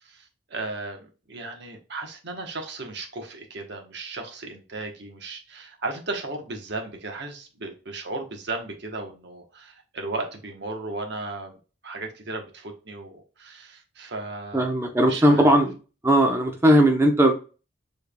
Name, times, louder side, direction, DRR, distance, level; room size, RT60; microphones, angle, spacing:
voice 1, 0.0-11.6 11.8-14.7 15.0-15.6, right 3 dB, 65° right, 1.1 m, -35 dB
voice 2, 14.5-15.7 16.0-17.3, right 1 dB, 15° right, 0.7 m, -18 dB
6.9 x 3.4 x 2.2 m
head